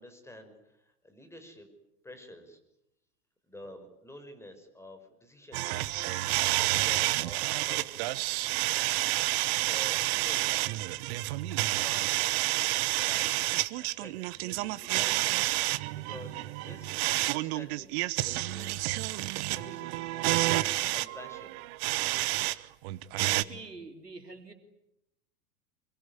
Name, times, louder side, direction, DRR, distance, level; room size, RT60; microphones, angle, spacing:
voice 1, 0.0-1.7 2.0-2.6 3.5-6.0 6.5-8.4 9.6-12.4 12.7-15.4 15.9-18.9 19.5-21.6, left 1 dB, 5° left, 7 dB, 5.8 m, -50 dB
sound 1, 5.5-22.6 22.8-23.4, right 19 dB, 40° right, 1.1 m, -29 dB
voice 2, 23.2-24.5, right 3 dB, 85° right, 6 dB, 3.3 m, -45 dB
26.0 x 22.0 x 9.8 m, 0.84 s
figure-of-eight pair, 90°, 47 cm